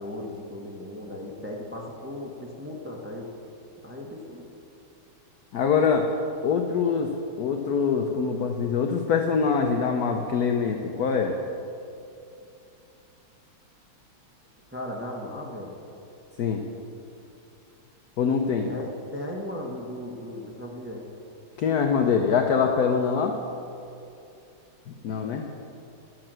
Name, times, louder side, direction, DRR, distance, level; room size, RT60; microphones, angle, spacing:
voice 1, 0.0-3.3 3.8-4.4 14.7-15.7 18.6-21.1, left 1 dB, 10° right, -1 dB, 0.7 m, -37 dB
voice 2, 5.5-6.1 6.4-7.1 7.4-11.3 16.4-16.6 18.2-18.7 21.6-23.3 25.0-25.4, left 6 dB, 65° left, 3 dB, 1.0 m, -24 dB
11.5 x 7.7 x 7.5 m, 2.7 s
omnidirectional pair, 2.4 m